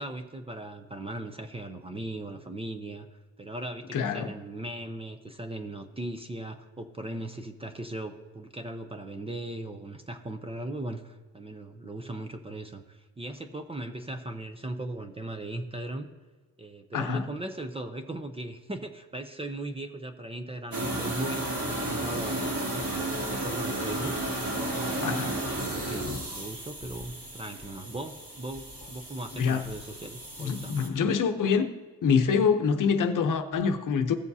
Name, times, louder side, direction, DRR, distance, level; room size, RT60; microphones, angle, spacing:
voice 1, 0.0-16.1 16.6-24.1 24.7-30.9, right 1 dB, 15° right, 0.5 m, -38 dB
voice 2, 3.9-4.3 16.9-17.2 25.0-25.4 29.3-29.6 30.4-31.7 32.0-34.2, left 6 dB, 60° left, 0.8 m, -25 dB
sound 1, 20.7-30.9, right 1 dB, 40° right, 2.3 m, -33 dB
16.5 x 7.0 x 2.7 m
wide cardioid pair, 145°, 36 cm